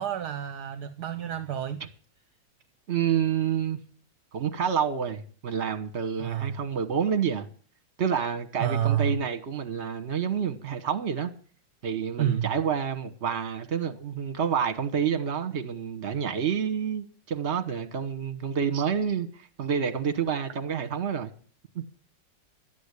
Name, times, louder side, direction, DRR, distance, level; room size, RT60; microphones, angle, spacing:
voice 1, 0.0-1.8 6.2-6.5 8.6-9.2 12.2-12.5, right 10 dB, 65° right, 1.2 m, -28 dB
voice 2, 2.9-3.8 4.3-7.5 8.0-11.3 11.8-21.3 21.7-21.9, right 7 dB, 40° right, 1.4 m, -28 dB
12.0 x 8.4 x 8.3 m
omnidirectional pair, 2.0 m